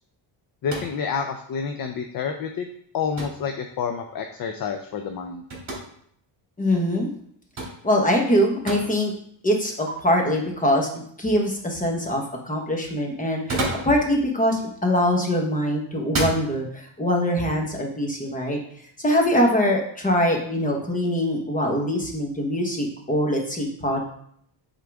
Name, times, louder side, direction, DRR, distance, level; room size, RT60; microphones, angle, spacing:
voice 1, 0.6-2.7 2.9-5.4, left 6 dB, 50° left, 5 dB, 0.6 m, -29 dB
sound 1, 0.7-1.0 3.2-3.5 5.5-5.8 7.6-7.8 8.7-8.9 9.9-10.0 13.3-14.0 15.1-15.4 16.0-16.4, right 2 dB, 35° right, 2.4 m, -29 dB
voice 2, 6.6-7.1 7.8-9.1 9.4-18.6 19.0-24.1, equal, 15° left, 1 dB, 1.1 m, -23 dB
8.2 x 3.8 x 3.5 m, 0.66 s
cardioid pair, 160°, 47 cm